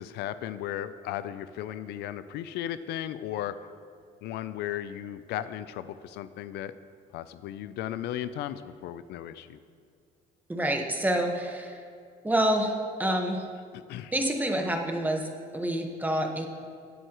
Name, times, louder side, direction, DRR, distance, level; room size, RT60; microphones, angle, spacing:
voice 1, 0.0-3.6 4.2-6.7 7.1-9.6 13.9-14.1, left 11 dB, 80° left, 13 dB, 0.5 m, -35 dB
voice 2, 10.5-11.8 12.2-12.7 13.0-13.4 14.1-16.5, right 1 dB, 10° right, 2 dB, 1.3 m, -27 dB
20.5 x 8.0 x 3.0 m, 2.3 s
cardioid pair, 110°, 17 cm